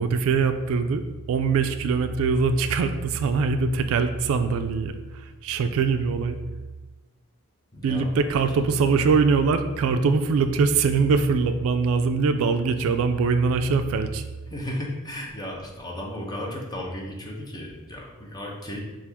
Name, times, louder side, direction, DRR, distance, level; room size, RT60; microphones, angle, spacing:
voice 1, 0.0-6.4 7.8-14.2, right 4 dB, 65° right, 10 dB, 0.3 m, -23 dB
voice 2, 7.7-8.5 14.5-18.8, left 1 dB, 20° left, -1 dB, 0.7 m, -35 dB
5.8 x 2.4 x 3.4 m, 1.2 s
head